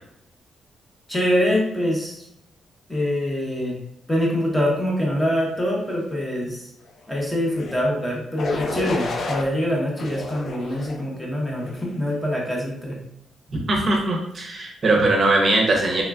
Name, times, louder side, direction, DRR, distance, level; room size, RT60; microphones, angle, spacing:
voice 1, 1.1-2.2 2.9-3.8 4.1-6.7 7.1-13.0, equal, 10° left, -2 dB, 0.7 m, -24 dB
sound 1, 7.5-7.8 8.4-9.4 10.0-11.0 11.6-12.0, left 2 dB, 55° left, 0.4 m, -31 dB
voice 2, 13.7-16.0, right 2 dB, 40° right, -1 dB, 0.6 m, -20 dB
3.0 x 2.3 x 2.3 m, 0.77 s
cardioid pair, 130°, 0 cm